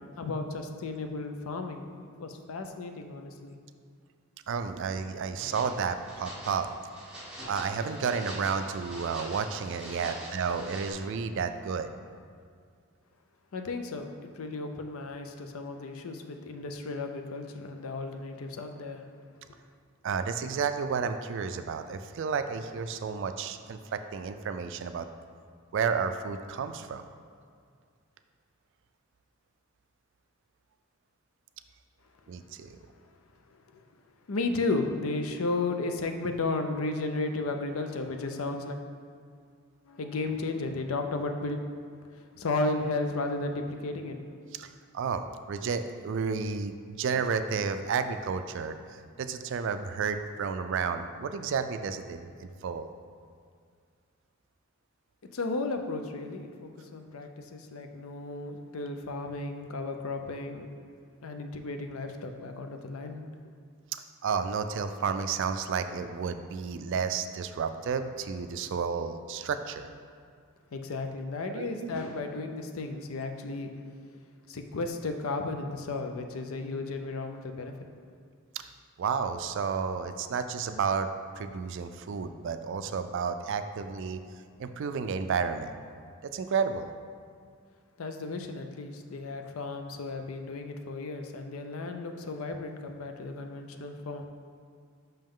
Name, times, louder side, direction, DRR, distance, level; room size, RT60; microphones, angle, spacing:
voice 1, 0.2-3.6 13.5-19.0 33.7-33.8 34.3-38.8 39.9-41.6 42.4-44.2 55.3-60.7 61.2-63.2 70.7-73.7 74.5-77.7 88.0-94.3, left 3 dB, 85° left, 6 dB, 0.5 m, -34 dB
voice 2, 4.5-6.7 7.5-11.9 20.0-25.0 25.7-27.1 32.3-32.8 44.5-44.7 44.9-52.9 64.2-69.9 71.5-71.9 78.6-78.7 79.0-81.1 81.4-84.2 84.6-85.7 86.2-86.9, right 5 dB, 60° right, 9 dB, 0.3 m, -31 dB
sound 1, 5.4-10.9, equal, 5° right, 1.4 m, -44 dB
5.7 x 5.3 x 3.7 m, 2.2 s
head